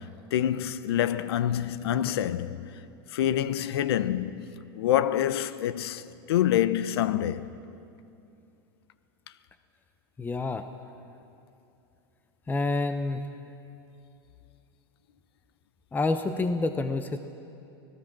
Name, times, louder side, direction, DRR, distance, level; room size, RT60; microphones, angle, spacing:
voice 1, 0.0-2.7 3.1-7.5, left 11 dB, 80° left, 0.8 m, -27 dB
voice 2, 10.2-10.6 12.5-13.2 15.9-17.2, left 3 dB, 15° left, 0.9 m, -28 dB
25.5 x 18.0 x 6.1 m
hypercardioid pair, 110°, 13 cm